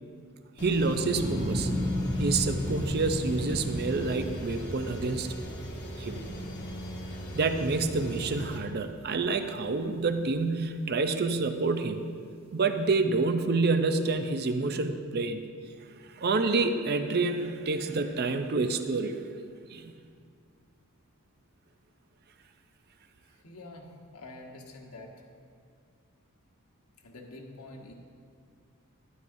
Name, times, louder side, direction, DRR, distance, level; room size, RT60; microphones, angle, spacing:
sound 1, 0.6-8.6, equal, 50° left, 1.1 m, -39 dB
voice 1, 0.6-1.7 2.2-5.3 6.0-6.3 7.3-12.1 12.5-15.4 16.2-19.2 19.7-19.9, right 3 dB, 45° right, 8 dB, 0.5 m, -28 dB
sound 2, 1.1-7.5 7.9-8.5, left 1 dB, 25° right, 1.0 m, -33 dB
voice 2, 23.4-23.9 24.1-25.1 27.0-27.9, left 2 dB, 80° left, 1 dB, 1.3 m, -46 dB
12.5 x 11.0 x 2.7 m, 2.2 s
head